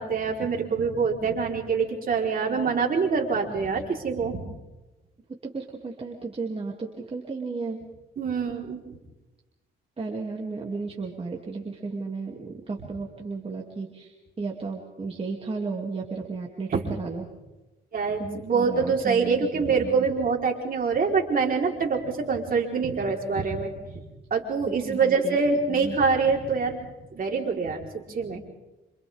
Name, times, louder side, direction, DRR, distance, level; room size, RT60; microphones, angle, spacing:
voice 1, 0.0-4.4 8.2-9.0 16.7-16.8 17.9-24.0 24.3-26.8 27.1-28.4, right 5 dB, 45° right, 0 dB, 4.3 m, -25 dB
voice 2, 5.5-7.8 10.0-17.2 18.2-20.1 24.8-25.4 25.7-26.0, right 4 dB, 30° right, -2 dB, 2.9 m, -34 dB
27.0 x 27.0 x 3.7 m, 1.1 s
cardioid pair, 90°, 20 cm